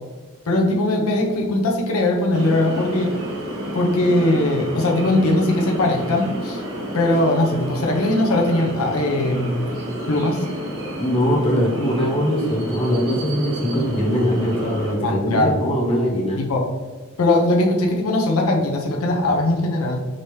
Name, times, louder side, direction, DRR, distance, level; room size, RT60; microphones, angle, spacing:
voice 1, 0.5-3.1 3.7-6.6 6.9-9.6 10.1-10.4 15.0-15.5 16.4-16.6 17.2-20.0, left 1 dB, 90° left, 0 dB, 0.7 m, -20 dB
sound 1, 2.3-15.0, right 1 dB, 85° right, 1.3 m, -30 dB
voice 2, 11.0-16.4, equal, 25° left, -5 dB, 1.2 m, -21 dB
5.1 x 2.8 x 3.2 m, 1.3 s
head